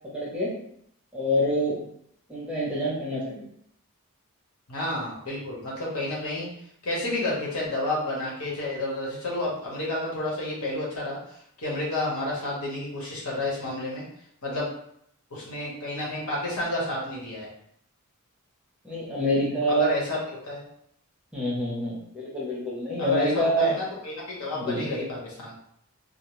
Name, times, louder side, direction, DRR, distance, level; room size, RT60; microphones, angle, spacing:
voice 1, 0.1-0.5 1.1-1.8 2.3-3.5 18.8-19.9 21.3-23.7 24.5-24.8, equal, 5° right, -7 dB, 0.8 m, -26 dB
voice 2, 4.7-6.5 6.8-14.0 14.4-14.7 15.3-17.5 19.7-20.7 23.0-25.5, left 2 dB, 80° left, -5 dB, 1.1 m, -30 dB
2.7 x 2.0 x 3.0 m, 0.71 s
head